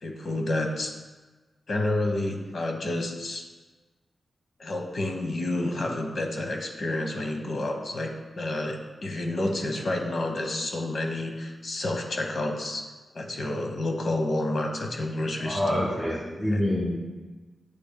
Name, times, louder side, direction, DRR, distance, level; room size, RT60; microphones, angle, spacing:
voice 1, 0.0-1.0 1.7-3.4 4.6-12.9 13.1-15.9 16.5-16.6, left 1 dB, 55° left, 3 dB, 0.9 m, -29 dB
voice 2, 15.4-17.0, left 1 dB, ahead, -5 dB, 1.5 m, -26 dB
8.5 x 8.2 x 2.2 m, 1.2 s
wide cardioid pair, 130°, 0 cm